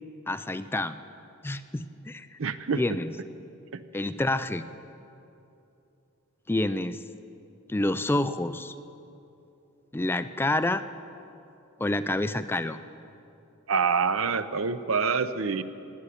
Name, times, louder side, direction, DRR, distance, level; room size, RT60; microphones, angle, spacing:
voice 1, 0.3-1.0 1.4-2.4 2.8-3.1 3.9-4.6 6.5-7.0 7.7-8.7 9.9-10.8 11.8-12.8, left 1 dB, 10° left, 11 dB, 0.4 m, -28 dB
voice 2, 2.4-2.8 13.7-15.6, right 5 dB, 70° right, 12 dB, 0.7 m, -26 dB
17.5 x 8.1 x 10.0 m, 2.8 s
head